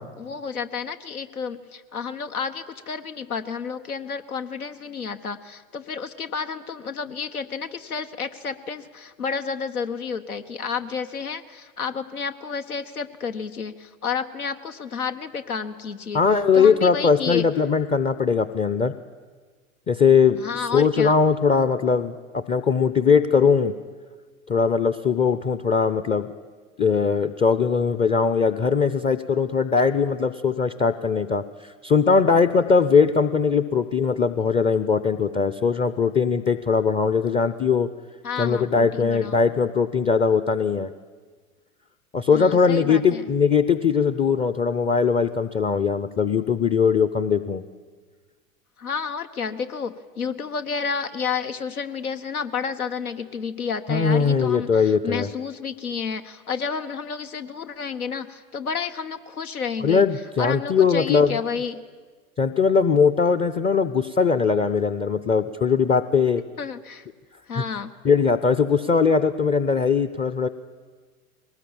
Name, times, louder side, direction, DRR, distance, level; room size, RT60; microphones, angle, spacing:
voice 1, 0.0-16.2 16.5-17.5 20.4-21.1 38.2-39.4 42.3-43.3 48.8-60.0 60.4-61.8 66.6-67.1 67.5-67.9, left 6 dB, 85° left, 8 dB, 1.3 m, -31 dB
voice 2, 16.1-18.9 19.9-23.7 24.5-26.3 26.8-37.9 38.4-40.9 42.1-47.6 53.9-55.3 59.8-61.4 62.4-66.4 67.6-67.7 68.0-70.5, left 5 dB, 15° left, 12 dB, 0.6 m, -20 dB
21.0 x 19.0 x 8.8 m, 1.4 s
hypercardioid pair, 95°, 43 cm